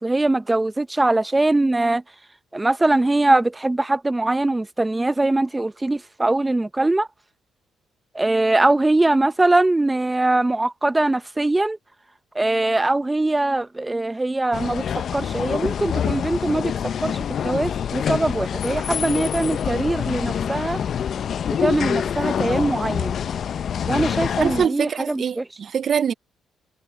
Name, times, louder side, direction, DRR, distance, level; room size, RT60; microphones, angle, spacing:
voice 1, 0.0-2.0 2.5-7.1 8.1-11.8 12.3-14.9 15.1-16.7 17.0-17.2 17.4-20.8 21.6-23.1 23.8-25.4, right 2 dB, 15° right, 0.7 m, -21 dB
sound 1, 14.5-24.7, left 8 dB, 60° left, 0.5 m, -26 dB
voice 2, 24.4-26.1, right 7 dB, 55° right, 0.4 m, -23 dB
cardioid pair, 90°, 0 cm